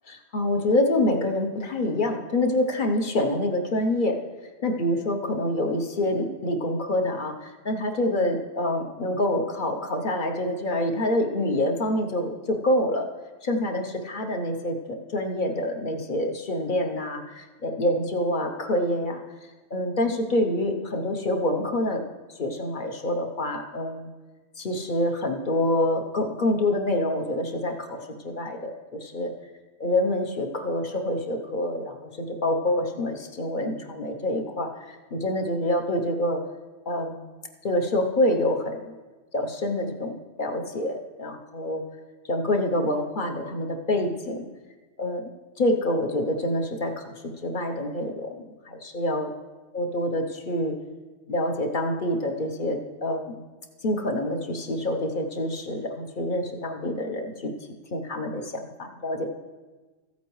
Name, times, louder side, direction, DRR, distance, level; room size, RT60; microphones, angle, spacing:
voice 1, 0.1-4.2 4.6-13.1 13.4-19.2 19.7-22.0 22.4-24.1 24.6-29.3 29.8-36.4 36.9-37.2 37.6-38.9 39.3-41.8 42.3-44.5 45.0-45.2 45.6-47.1 47.4-49.3 49.7-50.7 51.3-53.4 53.8-57.5 57.9-59.3, left 1 dB, 45° left, 3 dB, 0.9 m, -26 dB
14.5 x 8.3 x 3.1 m, 1.3 s
omnidirectional pair, 1.3 m